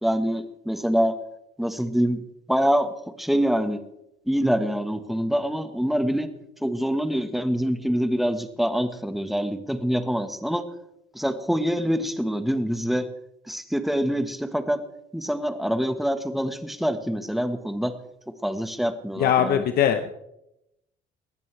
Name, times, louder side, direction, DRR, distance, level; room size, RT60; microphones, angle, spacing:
voice 1, 0.0-1.1 1.6-2.2 2.5-2.9 3.2-3.8 4.3-6.3 6.6-10.7 11.1-13.0 13.5-14.8 15.1-17.9 18.4-19.6, equal, ahead, 9 dB, 1.4 m, -25 dB
voice 2, 19.2-20.1, left 9 dB, 65° left, 8 dB, 1.0 m, -21 dB
20.5 x 15.0 x 3.3 m, 0.83 s
cardioid pair, 110°, 17 cm